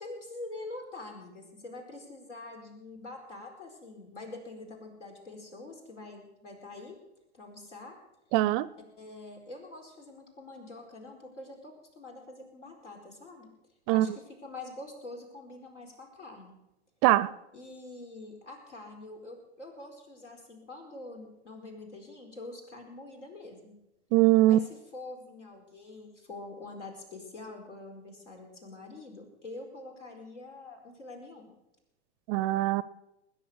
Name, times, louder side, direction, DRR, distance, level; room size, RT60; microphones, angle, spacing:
voice 1, 0.0-7.0 7.3-8.0 9.0-13.5 13.9-16.6 17.5-23.8 24.4-31.5, left 2 dB, 85° left, 3 dB, 4.7 m, -45 dB
voice 2, 8.3-8.7 13.9-14.1 17.0-17.3 24.1-24.6 32.3-32.8, right 16 dB, 35° right, 19 dB, 0.5 m, -22 dB
20.5 x 10.0 x 6.3 m, 0.90 s
hypercardioid pair, 110°, 35 cm